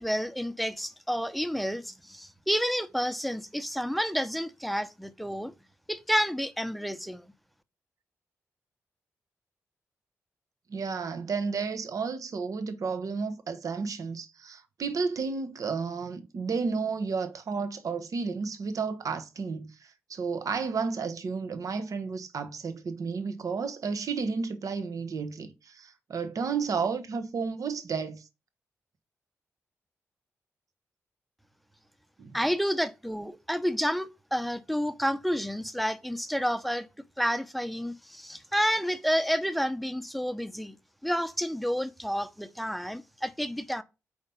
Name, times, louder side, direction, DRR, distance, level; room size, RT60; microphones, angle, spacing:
voice 1, 0.0-5.5 5.9-7.2 32.3-36.9 37.2-40.7 41.0-43.8, equal, ahead, 0.7 m, -30 dB
voice 2, 10.7-19.7 20.1-28.2 32.2-32.4, right 5 dB, 65° right, 0.9 m, -32 dB
4.9 x 4.4 x 5.5 m
supercardioid pair, 45°, 6 cm